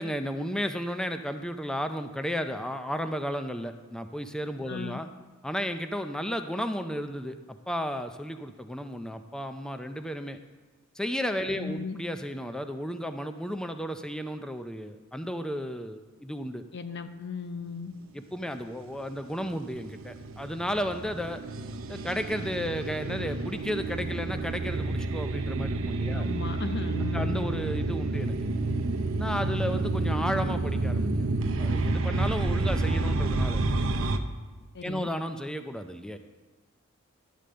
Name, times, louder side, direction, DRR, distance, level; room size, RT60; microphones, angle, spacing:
voice 1, 0.0-5.1 5.4-10.4 10.9-16.6 18.1-21.4 21.9-26.3 27.0-28.4 29.2-31.1 31.6-33.6 34.8-36.2, equal, 5° left, 8 dB, 0.4 m, -33 dB
voice 2, 4.7-5.0 11.6-12.0 16.7-17.9 26.1-27.4 34.7-35.1, left 4 dB, 50° left, 9 dB, 0.7 m, -36 dB
sound 1, 19.4-34.2, right 2 dB, 65° right, 0.7 m, -29 dB
11.5 x 5.2 x 7.6 m, 1.3 s
head